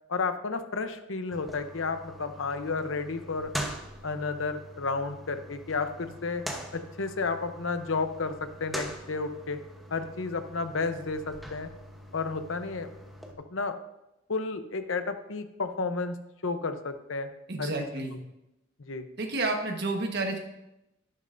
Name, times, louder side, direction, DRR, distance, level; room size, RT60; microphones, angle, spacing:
voice 1, 0.1-3.5 4.0-6.4 6.7-9.6 9.9-11.7 12.1-12.9 13.5-13.8 14.3-16.2 16.4-17.3 17.6-17.7 18.8-19.1, left 4 dB, 65° left, 9 dB, 0.8 m, -32 dB
sound 1, 1.3-13.3, equal, ahead, 1.0 m, -42 dB
voice 2, 17.5-18.2 19.2-20.4, right 2 dB, 55° right, 3 dB, 1.4 m, -30 dB
11.0 x 11.0 x 2.6 m, 0.90 s
head